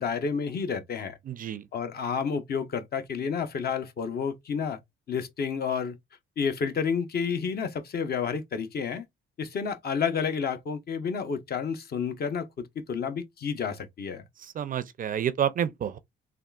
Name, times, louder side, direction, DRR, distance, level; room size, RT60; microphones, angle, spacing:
voice 1, 0.0-1.2 1.7-4.8 5.1-6.0 6.4-9.0 9.4-14.2, left 6 dB, 50° left, 0.7 m, -30 dB
voice 2, 1.3-1.6 14.6-16.0, right 9 dB, 45° right, 0.4 m, -29 dB
3.6 x 2.4 x 2.3 m
cardioid pair, 90°, 20 cm